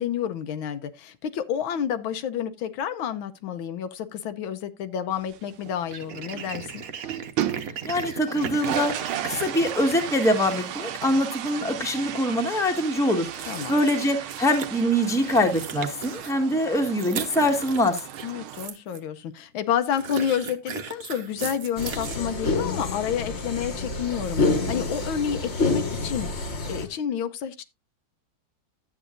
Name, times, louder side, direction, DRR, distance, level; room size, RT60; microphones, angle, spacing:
voice 1, 0.0-6.8 13.5-13.8 18.2-27.6, left 8 dB, 80° left, 1.6 m, -29 dB
sound 1, 5.1-6.5 6.9-7.8 8.0-18.7, right 11 dB, 90° right, 1.6 m, -35 dB
sound 2, 5.4-5.5 5.9-11.1 13.2-14.7 15.1-19.0 19.9-22.2, right 7 dB, 55° right, 1.2 m, -37 dB
voice 2, 7.8-18.0, equal, ahead, 1.2 m, -24 dB
sound 3, 21.8-26.9, left 3 dB, 35° left, 1.4 m, -27 dB
12.0 x 8.6 x 2.5 m
omnidirectional pair, 2.2 m